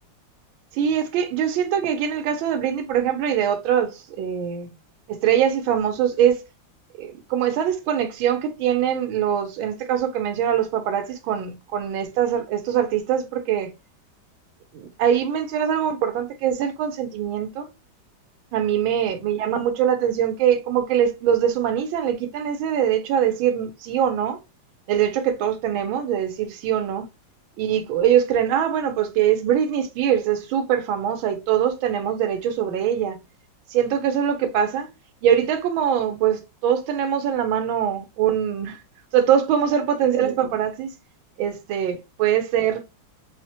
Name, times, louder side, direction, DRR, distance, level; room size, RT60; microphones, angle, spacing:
voice 1, 0.7-4.7 5.1-6.4 7.0-13.7 14.7-17.7 18.5-24.4 24.9-27.1 27.6-33.2 33.7-34.9 35.2-38.8 39.1-40.9 41.4-42.9, right 9 dB, 85° right, 1.5 m, -23 dB
4.2 x 2.1 x 2.6 m
omnidirectional pair, 2.2 m